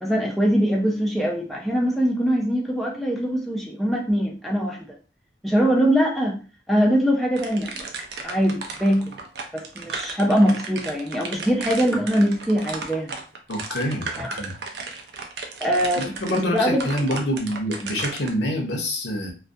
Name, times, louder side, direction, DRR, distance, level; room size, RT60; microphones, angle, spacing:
voice 1, 0.0-4.9 5.4-6.4 6.7-7.9 8.2-9.1 9.5-13.1 14.2-14.3 15.6-16.9, equal, ahead, -2 dB, 0.3 m, -22 dB
sound 1, 7.3-18.3, right 4 dB, 70° right, 0.4 m, -35 dB
voice 2, 13.5-14.1 14.4-14.5 16.0-19.3, equal, 80° left, 2 dB, 0.6 m, -26 dB
2.3 x 2.1 x 2.5 m, 0.35 s
head